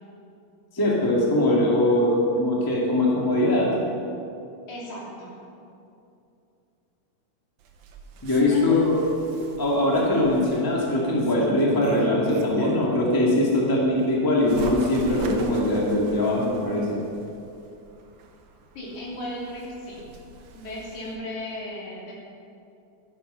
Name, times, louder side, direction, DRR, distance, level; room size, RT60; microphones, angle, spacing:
voice 1, 0.7-3.7 8.2-9.1 9.6-17.0, left 1 dB, 10° left, -3 dB, 1.7 m, -22 dB
voice 2, 4.7-5.4 8.3-8.9 18.8-20.0 20.5-22.1, left 1 dB, 85° left, -4 dB, 4.4 m, -35 dB
Bird, 7.6-13.0 13.5-21.2, right 4 dB, 85° right, 2.5 m, -39 dB
12.5 x 12.0 x 5.6 m, 2.6 s
omnidirectional pair, 3.3 m